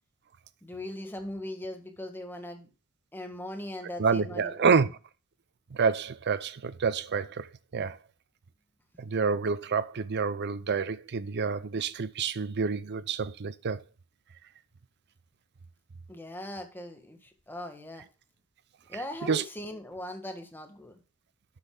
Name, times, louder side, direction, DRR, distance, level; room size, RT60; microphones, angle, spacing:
voice 1, 0.6-2.7 3.1-4.9 16.1-18.0 18.9-21.0, left 1 dB, 10° left, 1.7 m, -40 dB
voice 2, 4.0-4.9 5.7-7.5 7.7-8.0 9.0-13.8 19.3-19.4, right 5 dB, 50° right, 0.6 m, -28 dB
12.0 x 8.0 x 2.3 m
head